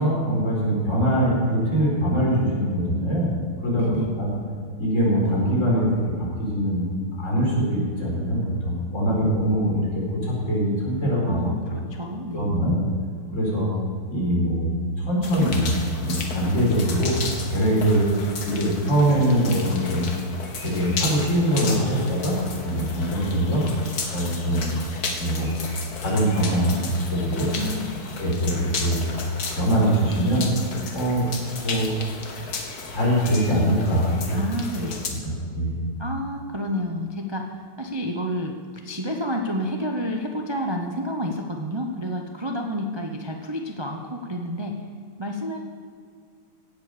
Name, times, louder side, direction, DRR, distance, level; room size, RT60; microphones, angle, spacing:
voice 1, 0.0-3.3 3.6-4.3 4.8-6.8 7.2-11.4 12.3-12.8 13.3-13.7 14.1-14.7 15.0-15.7 16.0-17.2 17.5-18.1 18.4-20.1 20.6-22.4 22.6-23.6 24.1-24.7 25.2-25.5 26.0-27.5 28.2-29.0 29.5-30.5 30.9-31.3 31.6-31.9 32.9-34.4 34.7-35.8, equal, 35° left, -5 dB, 4.8 m, -23 dB
voice 2, 3.8-4.1 9.1-9.3 11.3-12.5 27.6-28.1 31.7-31.8 34.3-35.0 36.0-38.6 38.8-44.8 45.2-45.6, equal, 45° right, 2 dB, 0.3 m, -30 dB
sound 1, 15.2-35.1, left 4 dB, 50° left, 1.8 m, -34 dB
17.0 x 8.3 x 6.9 m, 2.2 s
omnidirectional pair, 2.4 m